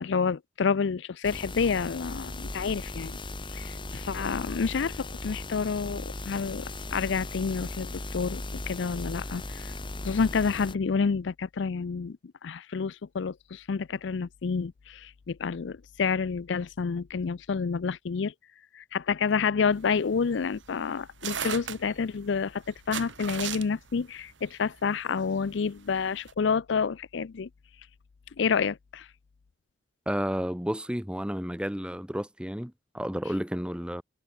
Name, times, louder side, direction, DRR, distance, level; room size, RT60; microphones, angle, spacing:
voice 1, 0.0-3.2 3.5-9.7 10.0-12.2 12.4-18.3 18.7-27.5 28.4-29.1, left 5 dB, 65° left, 0.5 m, -29 dB
sound 1, 1.2-10.8, left 2 dB, 25° left, 1.9 m, -38 dB
sound 2, 19.7-26.3, right 8 dB, 70° right, 1.9 m, -38 dB
voice 2, 30.1-34.0, equal, 5° right, 1.3 m, -31 dB
head